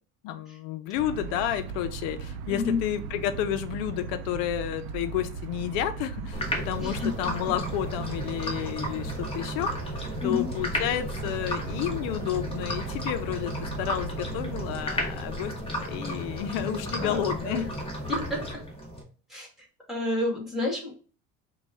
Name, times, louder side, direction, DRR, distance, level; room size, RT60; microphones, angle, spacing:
voice 1, 0.2-15.5 15.8-17.7, left 11 dB, 85° left, 10 dB, 0.6 m, -31 dB
sound 1, 0.9-14.8, right 6 dB, 80° right, 0.5 m, -38 dB
sound 2, 6.3-19.0, equal, 15° left, 1.2 m, -34 dB
voice 2, 6.8-7.1 10.2-10.5 16.5-17.6 18.1-18.6 19.3-19.5 19.9-20.9, left 3 dB, ahead, -2 dB, 1.6 m, -30 dB
4.2 x 2.3 x 4.6 m, 0.38 s
cardioid pair, 135°, 34 cm